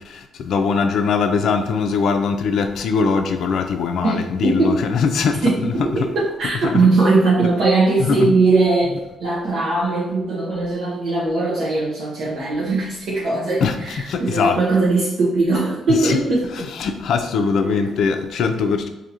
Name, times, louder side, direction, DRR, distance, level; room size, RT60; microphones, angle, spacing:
voice 1, 0.1-5.7 6.6-6.9 8.0-8.3 13.6-13.7 14.0-14.6 16.0-16.2 16.6-18.9, left 5 dB, 70° left, 6 dB, 0.4 m, -21 dB
voice 2, 4.0-4.8 5.4-16.6 17.6-17.9, right 3 dB, 70° right, -7 dB, 0.9 m, -20 dB
4.3 x 2.7 x 2.6 m, 0.99 s
cardioid pair, 90°, 0 cm